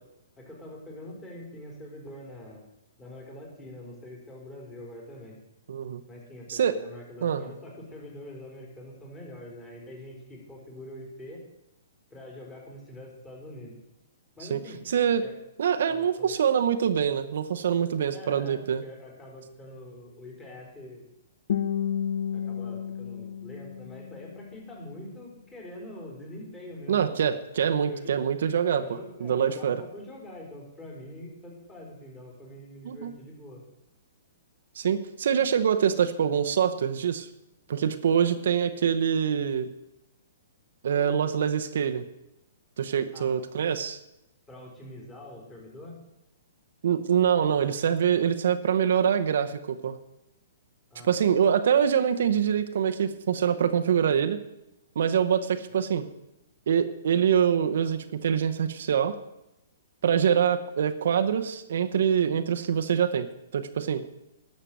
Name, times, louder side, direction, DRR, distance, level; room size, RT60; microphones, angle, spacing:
voice 1, 0.4-2.7 3.0-5.4 6.1-11.4 12.1-13.8 14.4-14.8 15.2-15.3 15.9-16.3 18.1-21.1 22.3-27.2 27.9-28.2 28.7-33.6 43.1-43.6 44.5-46.0 47.4-47.6 50.9-51.5, left 1 dB, 15° left, -2 dB, 4.0 m, -44 dB
voice 2, 5.7-6.0 6.5-6.8 7.2-7.4 14.5-14.6 14.9-15.2 15.6-18.8 26.9-29.8 32.8-33.1 34.8-37.3 37.7-39.7 40.8-42.0 42.8-44.0 46.8-50.0 51.1-54.4 55.0-56.1 56.7-59.2 60.0-64.0, right 8 dB, 70° right, 9 dB, 0.8 m, -25 dB
Guitar, 21.5-24.5, left 9 dB, 65° left, 0.7 m, -31 dB
11.5 x 6.7 x 7.5 m, 0.90 s
hypercardioid pair, 140°, 0 cm